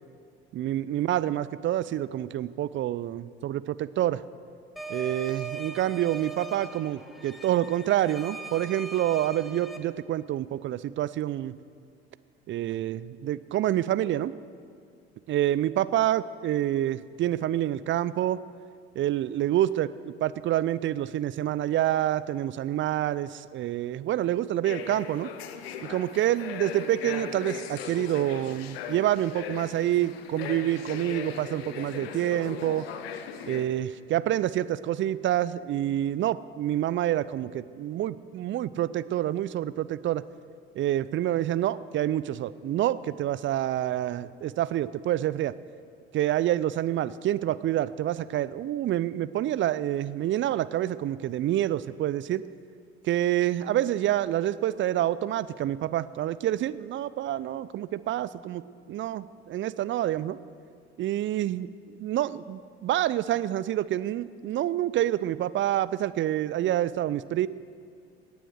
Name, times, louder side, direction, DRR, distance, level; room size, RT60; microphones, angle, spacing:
voice 1, 0.5-4.2 4.9-11.5 12.5-14.3 15.3-18.4 19.0-25.3 25.8-32.9 33.5-40.2 40.8-45.5 46.1-52.4 53.0-58.6 58.9-60.4 61.0-67.5, right 12 dB, 40° right, 17 dB, 0.5 m, -27 dB
sound 1, 4.8-9.8, right 4 dB, ahead, 1.4 m, -40 dB
sound 2, 24.6-33.6, left 8 dB, 75° left, 0.9 m, -38 dB
18.0 x 9.3 x 6.5 m, 2.2 s
figure-of-eight pair, 60°, 31 cm